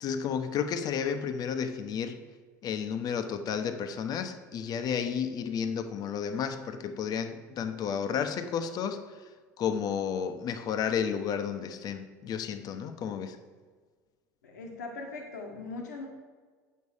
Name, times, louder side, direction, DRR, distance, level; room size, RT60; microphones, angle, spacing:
voice 1, 0.0-2.2 2.6-9.2 9.6-13.4, left 7 dB, 45° left, 7 dB, 0.9 m, -32 dB
voice 2, 14.4-16.1, left 3 dB, 90° left, 0 dB, 1.4 m, -40 dB
8.3 x 6.5 x 7.1 m, 1.5 s
hypercardioid pair, 85°, 9 cm